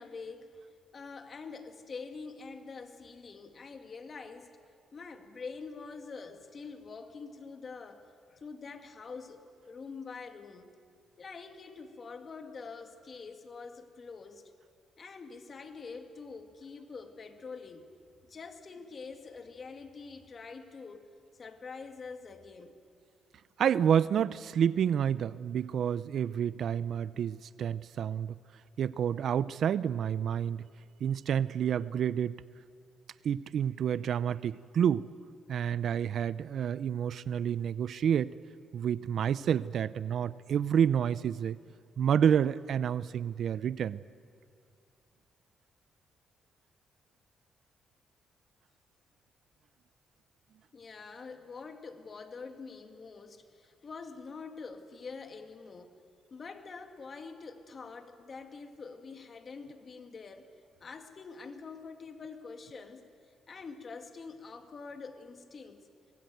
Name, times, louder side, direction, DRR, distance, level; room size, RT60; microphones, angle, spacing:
voice 1, 0.0-4.5 4.9-10.7 11.2-14.5 15.0-17.9 18.2-21.0 21.3-22.8 50.7-55.9 56.3-60.5 60.8-65.8, left 4 dB, 40° left, 6 dB, 2.3 m, -45 dB
voice 2, 23.6-28.4 28.8-30.6 31.0-32.4 33.2-35.1 35.5-38.4 38.7-41.6 42.0-44.0, right 8 dB, 65° right, 18 dB, 0.6 m, -29 dB
24.0 x 20.0 x 9.3 m, 2.2 s
cardioid pair, 95°, 0 cm